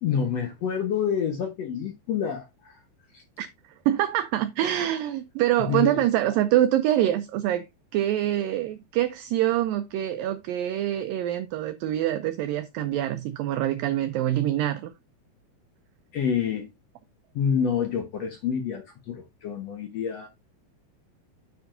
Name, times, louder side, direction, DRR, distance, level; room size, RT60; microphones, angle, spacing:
voice 1, 0.0-2.8 3.1-3.2 5.7-6.0 16.1-16.7 17.3-20.3, left 7 dB, 70° left, 1.6 m, -28 dB
voice 2, 3.9-7.7 7.9-14.9, right 13 dB, 80° right, 2.1 m, -25 dB
9.6 x 7.5 x 2.6 m
omnidirectional pair, 4.5 m